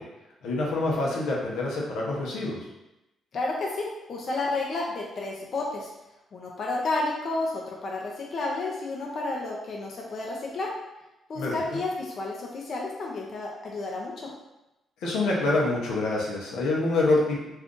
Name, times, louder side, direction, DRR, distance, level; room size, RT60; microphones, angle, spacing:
voice 1, 0.4-2.6 11.3-11.6 15.0-17.5, left 2 dB, 85° left, -3 dB, 0.7 m, -26 dB
voice 2, 3.3-5.9 6.3-10.7 11.3-14.3, left 2 dB, 55° left, -2 dB, 0.6 m, -31 dB
2.5 x 2.4 x 3.6 m, 0.93 s
cardioid pair, 90°, 0 cm